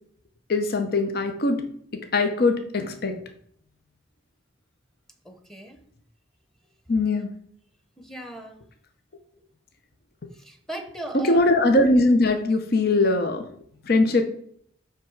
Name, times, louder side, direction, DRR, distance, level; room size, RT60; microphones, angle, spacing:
voice 1, 0.5-1.6 2.1-3.1 6.9-7.3 11.1-13.4 13.9-14.2, left 2 dB, 55° left, 6 dB, 0.8 m, -21 dB
voice 2, 5.2-5.8 7.1-7.3 8.0-8.6 10.4-11.4, right 2 dB, ahead, 6 dB, 1.0 m, -38 dB
7.7 x 3.6 x 6.4 m, 0.63 s
head